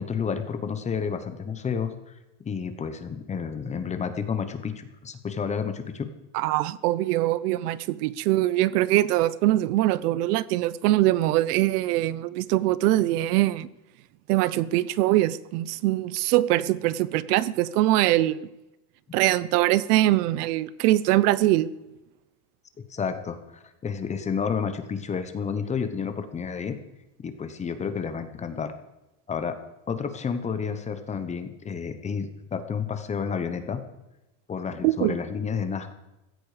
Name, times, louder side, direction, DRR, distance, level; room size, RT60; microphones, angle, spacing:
voice 1, 0.0-1.9 2.4-6.1 22.9-26.8 27.2-28.7 29.3-29.6 29.9-33.8 34.5-35.9, left 6 dB, 15° left, 9 dB, 1.0 m, -30 dB
voice 2, 6.3-13.7 14.3-18.5 19.1-21.7 34.8-35.2, right 15 dB, 80° right, 19 dB, 0.9 m, -23 dB
16.0 x 15.5 x 5.0 m, 0.97 s
cardioid pair, 175°, 45 cm